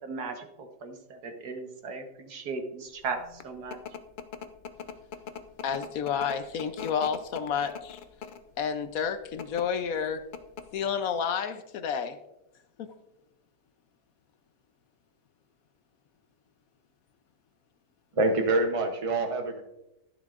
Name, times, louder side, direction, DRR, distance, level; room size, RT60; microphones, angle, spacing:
voice 1, 0.0-3.8, right 4 dB, 70° right, 5 dB, 1.7 m, -37 dB
sound 1, 3.1-8.5 9.2-9.6 10.0-10.1 10.3-10.8, left 7 dB, 90° left, 0.4 m, -41 dB
voice 2, 5.6-8.0 8.6-10.3 10.7-12.2 12.8-12.9, left 7 dB, 70° left, 10 dB, 1.0 m, -30 dB
voice 3, 18.2-19.6, right 2 dB, 40° right, 4 dB, 0.5 m, -26 dB
12.0 x 10.5 x 2.4 m, 0.89 s
omnidirectional pair, 1.7 m